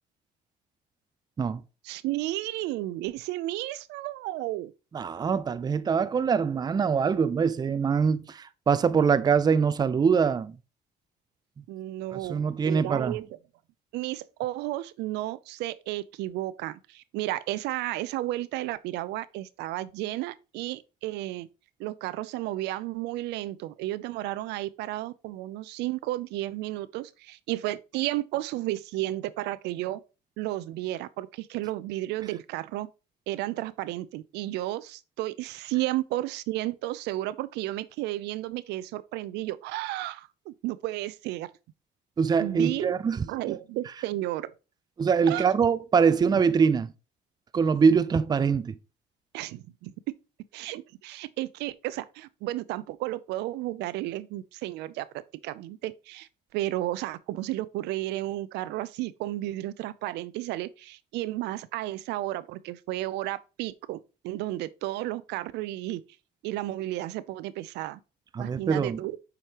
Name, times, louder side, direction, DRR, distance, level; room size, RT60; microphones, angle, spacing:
voice 1, 1.8-4.7 11.7-13.2 13.9-21.5 21.8-30.0 30.4-32.9 33.3-41.5 42.4-42.9 43.3-44.5 45.3-45.5 49.3-49.9 50.5-55.1 55.4-64.0 64.2-66.0 66.4-68.0 68.4-69.2, right 16 dB, 85° right, 0.5 m, -33 dB
voice 2, 4.9-10.5 11.6-11.7 12.3-13.2 42.2-43.5 45.0-46.9 47.5-48.7 68.3-69.0, right 6 dB, 25° right, 0.4 m, -24 dB
7.4 x 5.0 x 2.9 m
cardioid pair, 110°, 17 cm